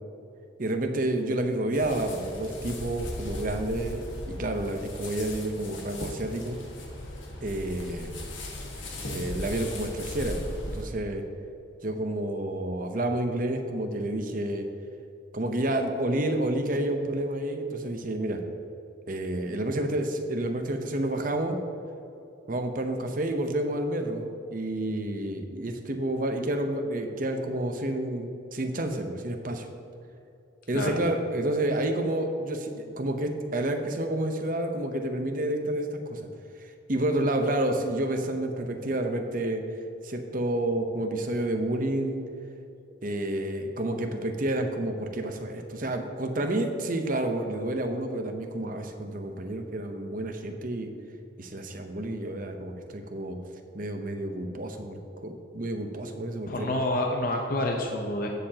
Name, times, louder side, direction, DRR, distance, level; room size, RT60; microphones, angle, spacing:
voice 1, 0.6-6.6 7.4-8.2 9.1-10.4 10.6-11.2 11.8-14.7 15.3-18.4 19.1-21.6 22.5-29.7 30.7-36.2 36.9-39.6 40.0-42.2 43.0-50.9 51.4-53.4 53.7-56.7, right 1 dB, 45° right, 5 dB, 0.8 m, -29 dB
sound 1, 1.7-10.8, left 1 dB, 75° left, 1.6 m, -38 dB
voice 2, 56.5-58.3, left 1 dB, 45° left, 1 dB, 0.8 m, -28 dB
15.0 x 6.7 x 2.9 m, 2.8 s
head